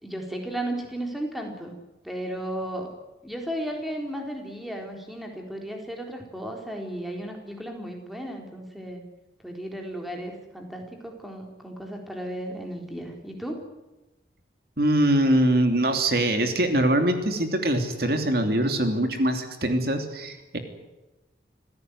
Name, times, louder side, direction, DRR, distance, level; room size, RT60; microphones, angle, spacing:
voice 1, 0.0-1.8 2.0-2.9 3.2-9.0 9.4-13.6, right 1 dB, ahead, 2 dB, 4.0 m, -34 dB
voice 2, 14.8-20.6, right 1 dB, 55° right, 6 dB, 3.1 m, -23 dB
26.5 x 16.5 x 9.5 m, 1.0 s
head